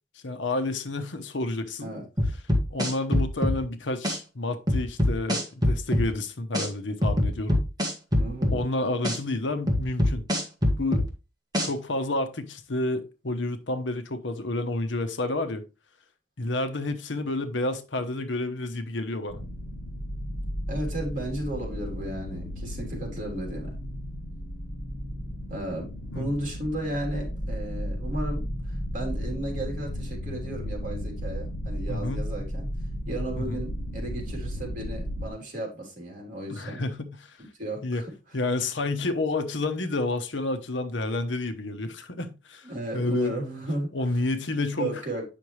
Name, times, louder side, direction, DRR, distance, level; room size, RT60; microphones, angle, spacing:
voice 1, 0.1-1.9 2.7-7.7 8.5-10.2 10.8-11.0 11.6-15.6 16.4-19.4 26.1-26.3 31.9-32.3 33.4-33.6 36.5-37.4 37.8-38.0 38.3-42.7 42.9-43.4 43.9-45.0, left 2 dB, 75° left, 1.0 m, -30 dB
sound 1, 2.2-3.6 4.0-4.2 4.7-6.1 6.5-6.7 7.0-8.6 9.0-9.2 9.7-11.1 11.5-11.7, left 1 dB, 20° right, 1.7 m, -23 dB
voice 2, 8.2-8.6 20.7-23.7 25.5-32.7 33.1-36.8 37.5-38.1 42.6-43.9 44.8-45.2, right 1 dB, 45° right, 3.3 m, -34 dB
sound 2, 19.3-35.3, equal, 55° left, 2.5 m, -34 dB
9.0 x 5.9 x 3.2 m
head